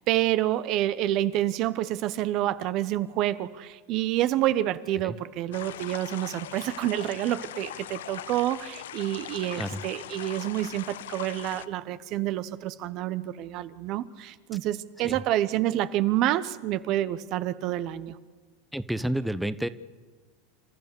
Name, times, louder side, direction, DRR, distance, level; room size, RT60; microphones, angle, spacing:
voice 1, 0.1-18.2, right 13 dB, 50° right, 14 dB, 0.9 m, -28 dB
sound 1, 5.5-11.7, left 12 dB, 75° left, 0.7 m, -40 dB
voice 2, 18.7-19.7, right 1 dB, 5° right, 13 dB, 0.8 m, -30 dB
29.0 x 14.0 x 7.0 m, 1.5 s
hypercardioid pair, 95°, 0 cm